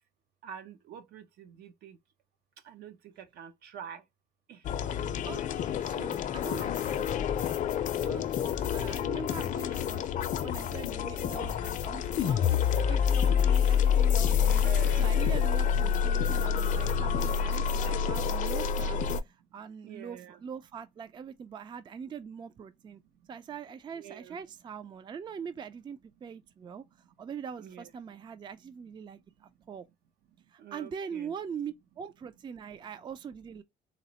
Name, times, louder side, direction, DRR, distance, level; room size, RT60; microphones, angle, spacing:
voice 1, 0.4-2.0 2.6-2.9 3.4-4.0 4.5-4.6 12.7-13.1 14.4-15.3 19.8-20.4 23.9-24.4 27.6-27.9 30.6-31.3, right 9 dB, 70° right, 0.7 m, -46 dB
sound 1, 4.6-19.2, left 7 dB, 50° left, 0.5 m, -27 dB
voice 2, 5.3-7.3 8.0-23.0 23.3-26.8 27.2-29.9 30.5-33.6, right 7 dB, 25° right, 0.3 m, -43 dB
4.0 x 2.0 x 2.8 m
cardioid pair, 110°, 17 cm